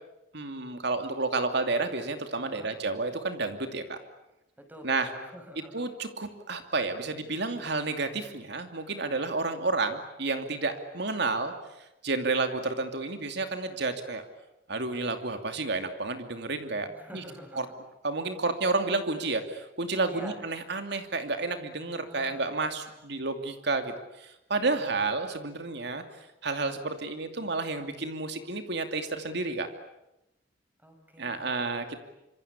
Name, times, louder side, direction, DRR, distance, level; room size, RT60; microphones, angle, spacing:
voice 1, 0.3-4.0 4.8-5.1 5.7-11.5 12.0-14.2 14.7-17.2 17.5-17.7 18.0-26.0 26.4-29.7 31.2-32.0, right 3 dB, 65° right, 7 dB, 2.7 m, -31 dB
voice 2, 2.4-2.7 4.6-5.8 16.9-17.7 20.1-20.4 21.9-23.0 24.5-25.0 30.8-32.0, equal, 10° right, 5 dB, 6.0 m, -48 dB
27.0 x 25.5 x 8.5 m, 0.90 s
head